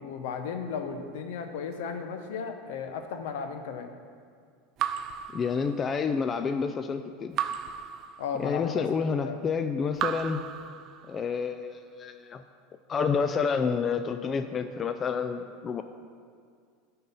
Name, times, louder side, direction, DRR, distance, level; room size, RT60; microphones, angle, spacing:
voice 1, 0.0-3.9 8.2-9.4, left 6 dB, 75° left, 6 dB, 0.7 m, -35 dB
Raindrop / Drip, 4.8-6.2 7.4-8.7 9.9-11.4, right 9 dB, 45° right, 0.4 m, -35 dB
voice 2, 5.3-7.4 8.4-10.5 11.1-12.4 12.9-15.8, left 5 dB, 30° left, 9 dB, 0.3 m, -29 dB
9.2 x 3.8 x 5.6 m, 2.1 s
hypercardioid pair, 100°, 0 cm